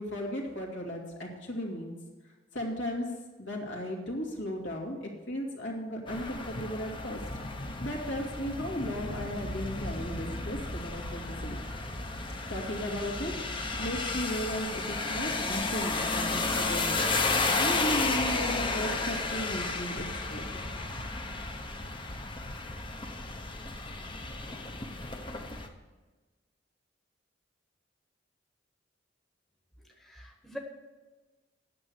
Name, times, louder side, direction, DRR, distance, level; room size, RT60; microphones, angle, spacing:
voice 1, 0.0-2.0 2.5-7.2 7.6-11.6 12.5-17.1 17.4-20.4, equal, 70° left, 0 dB, 2.6 m, -35 dB
sound 1, 6.1-25.7, left 3 dB, 25° left, 1.0 m, -33 dB
voice 2, 29.8-30.6, equal, ahead, 0 dB, 1.3 m, -44 dB
9.5 x 7.0 x 8.1 m, 1.2 s
head